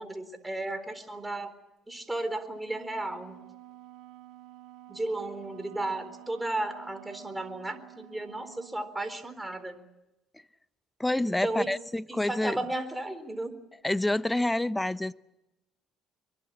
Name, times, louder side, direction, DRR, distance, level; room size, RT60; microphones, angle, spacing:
voice 1, 0.0-1.5 1.9-3.4 4.9-9.8 11.2-11.7 12.1-13.6, right 2 dB, 10° right, 3.9 m, -34 dB
Wind instrument woodwind instrument, 2.6-8.9, right 13 dB, 75° right, 2.1 m, -50 dB
voice 2, 11.0-12.6 13.8-15.1, left 1 dB, 10° left, 0.9 m, -28 dB
24.0 x 22.5 x 8.8 m
supercardioid pair, 70°, 0 cm